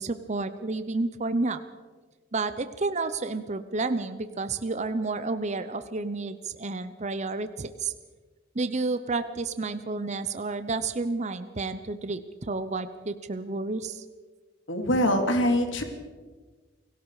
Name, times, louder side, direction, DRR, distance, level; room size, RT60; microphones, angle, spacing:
voice 1, 0.0-1.6 2.3-7.9 8.5-14.0, right 3 dB, 40° right, 11 dB, 0.8 m, -30 dB
voice 2, 14.7-15.8, equal, 90° left, 5 dB, 3.0 m, -23 dB
29.0 x 18.0 x 4.9 m, 1.4 s
head